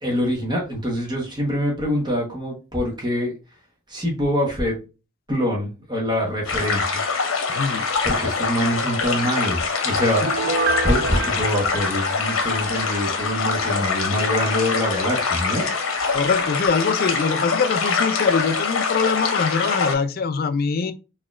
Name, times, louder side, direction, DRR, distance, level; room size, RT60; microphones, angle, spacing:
voice 1, 0.0-3.3 3.9-4.8 5.3-7.0 8.0-10.5 10.8-15.7, equal, 20° right, 1.0 m, -24 dB
sound 1, 6.5-19.9, left 4 dB, 80° left, 0.9 m, -24 dB
voice 2, 7.5-7.9 16.1-20.9, left 5 dB, 45° left, 0.3 m, -23 dB
Piano, 10.3-13.0 13.3-13.4, right 3 dB, 45° right, 0.3 m, -28 dB
4.0 x 2.9 x 2.4 m
head